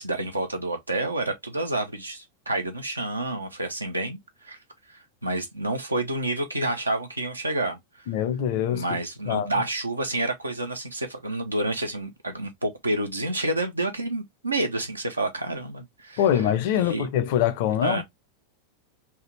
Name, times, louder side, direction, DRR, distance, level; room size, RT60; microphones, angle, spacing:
voice 1, 0.0-4.6 4.9-8.1 8.7-16.4 16.8-17.1 17.8-18.0, right 2 dB, 80° right, 0.8 m, -29 dB
voice 2, 8.1-8.8 9.3-9.5 16.2-18.0, left 10 dB, 50° left, 0.6 m, -24 dB
3.4 x 2.4 x 3.0 m
figure-of-eight pair, 90°, 0 cm